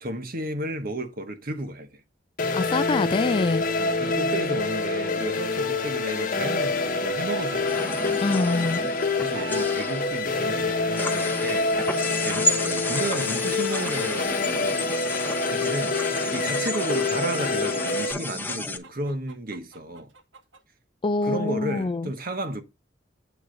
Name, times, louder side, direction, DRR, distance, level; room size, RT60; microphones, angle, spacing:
voice 1, 0.0-2.0 3.8-8.3 9.2-11.7 12.2-14.9 15.5-16.0 16.3-20.1 21.2-22.6, right 1 dB, 50° right, 1.2 m, -33 dB
sound 1, 2.4-18.1, left 3 dB, 45° left, 1.0 m, -26 dB
voice 2, 2.5-3.6 8.2-8.8 21.0-22.1, left 3 dB, 30° left, 0.4 m, -25 dB
Chicken rooster, 6.7-7.6 8.7-9.7 10.7-12.1 13.0-14.1 15.1-16.1 17.3-20.6, right 4 dB, 80° right, 1.3 m, -41 dB
sound 2, 7.6-18.8, left 2 dB, 10° left, 0.7 m, -32 dB
8.2 x 3.9 x 5.2 m
head